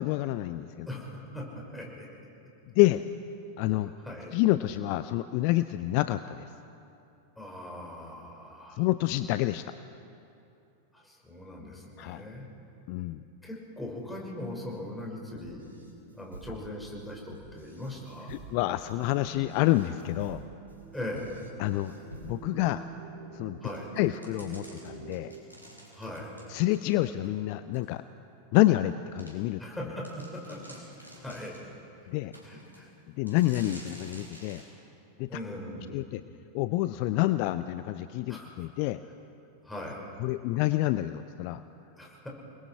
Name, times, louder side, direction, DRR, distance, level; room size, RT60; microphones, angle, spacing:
voice 1, 0.0-0.9 2.8-3.0 3.6-3.9 4.3-6.5 8.8-9.7 12.0-12.2 12.9-13.2 18.3-20.4 21.6-21.9 22.2-22.9 23.3-23.6 24.0-25.3 26.5-28.0 28.5-29.6 32.1-32.3 33.2-34.6 35.2-35.3 35.9-36.2 36.5-39.0 40.2-41.6, left 16 dB, 45° left, 13 dB, 0.5 m, -28 dB
voice 2, 0.9-2.1 4.0-4.3 7.4-8.8 10.9-12.5 13.4-15.6 16.1-18.4 20.9-21.5 23.6-23.9 25.9-26.3 29.6-31.5 32.4-32.9 35.3-35.9 38.3-38.6 39.6-40.0 42.0-42.3, left 1 dB, 5° left, -2 dB, 5.6 m, -40 dB
sound 1, 15.2-25.4, right 6 dB, 60° right, 1.3 m, -49 dB
sound 2, 15.3-22.6, right 2 dB, 80° right, 3.6 m, -49 dB
sound 3, 23.7-27.3 27.7-27.8 28.5-28.6 29.2-29.3 29.7-29.8 30.0-31.7 32.3-32.8 33.3-34.7, equal, 90° left, 4.9 m, -50 dB
28.5 x 20.5 x 4.7 m, 2.8 s
figure-of-eight pair, 90°, 0 cm